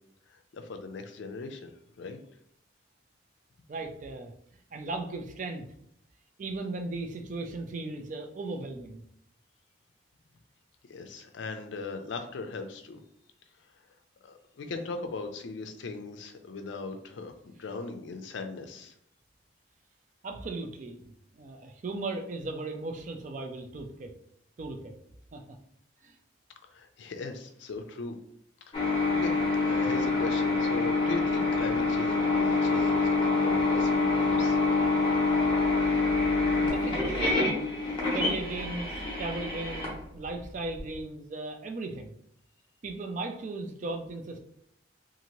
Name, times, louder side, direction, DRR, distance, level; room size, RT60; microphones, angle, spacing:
voice 1, 0.3-2.2 10.9-13.0 14.2-18.9 26.7-28.2 28.7-34.6, left 3 dB, 70° left, 6 dB, 0.4 m, -39 dB
voice 2, 3.7-4.3 4.7-5.7 6.4-9.0 20.2-24.1 24.6-25.0 25.3-25.4 26.0-26.2 36.4-37.3 38.0-38.9 39.2-42.2 42.8-44.4, right 2 dB, 40° right, 4 dB, 0.3 m, -37 dB
sound 1, 28.7-40.8, left 3 dB, 25° left, 0.8 m, -26 dB
2.8 x 2.5 x 2.9 m, 0.71 s
head